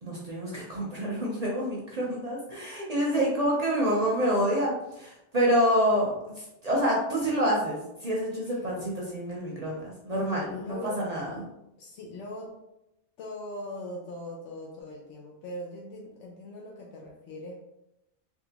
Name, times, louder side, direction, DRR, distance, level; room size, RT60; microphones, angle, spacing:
voice 1, 0.0-11.5, equal, 40° right, -4 dB, 0.7 m, -27 dB
voice 2, 10.5-11.5 11.8-12.6 13.2-17.6, left 1 dB, 85° left, -2 dB, 0.9 m, -40 dB
3.6 x 2.4 x 2.8 m, 0.88 s
omnidirectional pair, 1.2 m